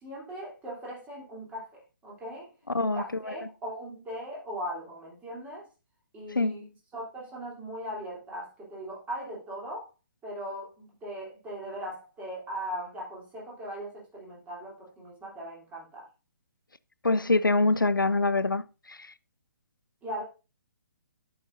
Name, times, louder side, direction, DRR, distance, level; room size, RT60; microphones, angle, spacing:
voice 1, 0.0-1.7 2.0-2.5 2.8-5.6 6.1-6.6 6.9-9.9 10.2-16.1 20.0-20.2, equal, 15° right, 3.2 m, -39 dB
voice 2, 6.3-6.7 17.0-19.1, left 3 dB, 85° left, 0.5 m, -25 dB
12.5 x 6.0 x 2.6 m
figure-of-eight pair, 135°, 11 cm